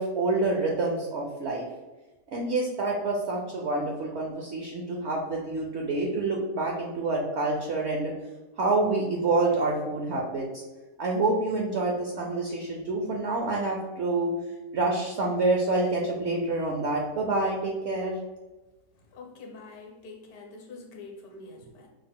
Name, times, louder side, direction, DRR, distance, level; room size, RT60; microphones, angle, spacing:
voice 1, 0.0-1.7 2.3-8.1 8.6-10.6 11.0-14.3 14.7-18.1, right 2 dB, 70° right, 0 dB, 0.6 m, -27 dB
voice 2, 18.9-21.9, left 3 dB, 65° left, 1 dB, 1.2 m, -45 dB
5.6 x 2.1 x 3.6 m, 1.2 s
omnidirectional pair, 1.8 m